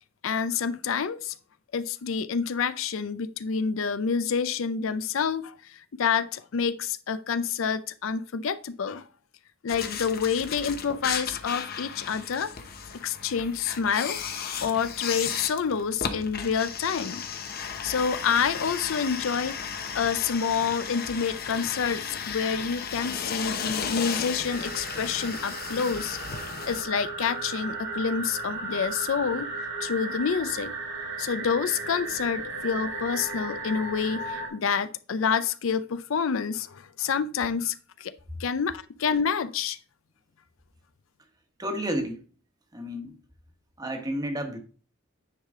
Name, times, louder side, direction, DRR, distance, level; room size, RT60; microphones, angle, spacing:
voice 1, 0.2-1.3 1.7-9.0 9.6-12.5 12.9-14.2 14.6-17.2 17.8-19.6 19.9-26.2 26.7-29.5 29.8-30.7 31.2-38.1 38.4-39.8, left 6 dB, 70° left, 0.5 m, -28 dB
sound 1, 9.7-26.8, left 7 dB, 50° left, 0.9 m, -35 dB
sound 2, 24.4-34.5, right 3 dB, 75° right, 3.5 m, -35 dB
voice 2, 41.6-42.2 42.7-43.2 43.8-44.6, equal, 20° right, 1.1 m, -31 dB
9.6 x 4.9 x 3.6 m
head